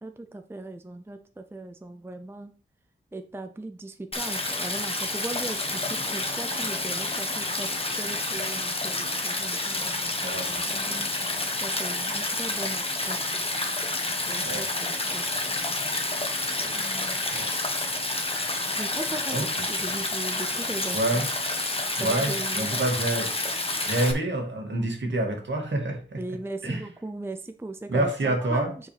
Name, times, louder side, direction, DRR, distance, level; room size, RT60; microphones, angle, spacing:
voice 1, 0.0-2.5 3.1-11.1 11.6-13.3 14.3-15.4 16.6-17.2 18.4-21.2 21.7-22.8 26.2-28.9, right 2 dB, 10° right, 7 dB, 0.5 m, -38 dB
Stream, 4.1-24.1, left 2 dB, 30° left, 1.3 m, -29 dB
voice 2, 10.2-10.6 14.4-14.7 17.3-17.5 19.3-19.7 20.9-21.3 22.0-23.3 23.8-26.2 26.6-26.8 27.9-28.7, right 1 dB, 65° right, 1 dB, 2.2 m, -27 dB
8.3 x 4.8 x 3.4 m, 0.41 s
wide cardioid pair, 95°, 21 cm